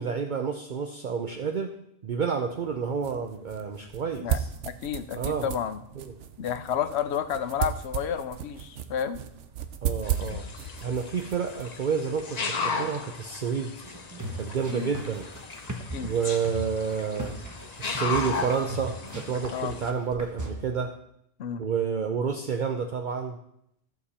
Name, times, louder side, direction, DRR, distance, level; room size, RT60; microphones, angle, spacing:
voice 1, 0.0-1.7 2.0-4.5 5.1-5.5 6.0-6.1 9.8-10.5 10.8-13.7 14.4-15.3 16.0-17.4 17.8-21.0 21.6-23.4, right 6 dB, 50° right, 5 dB, 0.7 m, -29 dB
sound 1, 2.5-12.4, right 10 dB, 85° right, 1.1 m, -35 dB
voice 2, 4.2-5.8 6.4-9.2 14.7-14.9 15.9-16.1 19.5-19.7 21.4-21.6, left 8 dB, 70° left, 11 dB, 1.0 m, -31 dB
sound 2, 10.0-19.9, left 4 dB, 40° left, 0.8 m, -36 dB
sound 3, 13.8-20.5, right 1 dB, 15° right, 1.1 m, -38 dB
14.0 x 7.0 x 4.3 m, 0.76 s
omnidirectional pair, 1.2 m